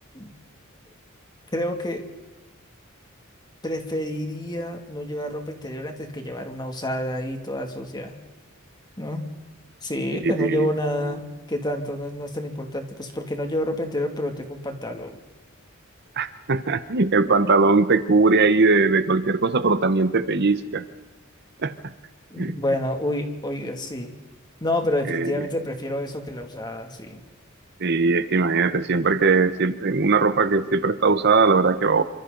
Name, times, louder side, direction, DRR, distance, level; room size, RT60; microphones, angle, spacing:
voice 1, 1.5-2.0 3.6-8.2 9.0-9.3 9.8-15.1 22.3-24.1 24.6-27.2, left 1 dB, 20° left, 4 dB, 2.5 m, -28 dB
voice 2, 10.2-10.7 16.2-20.8 21.6-21.7 22.4-22.5 25.1-25.3 27.8-32.0, right 4 dB, 55° right, 12 dB, 1.0 m, -20 dB
27.0 x 25.5 x 4.0 m, 1.2 s
head